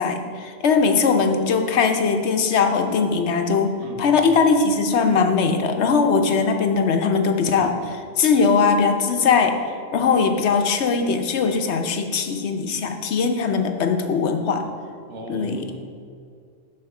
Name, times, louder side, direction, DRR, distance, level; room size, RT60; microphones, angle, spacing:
voice 1, 0.0-9.6 9.9-14.6 15.3-15.7, left 5 dB, 75° left, 5 dB, 1.0 m, -20 dB
voice 2, 3.8-4.2 15.1-15.8, right 1 dB, 85° right, 1 dB, 1.4 m, -36 dB
7.7 x 6.4 x 4.8 m, 2.3 s
omnidirectional pair, 1.2 m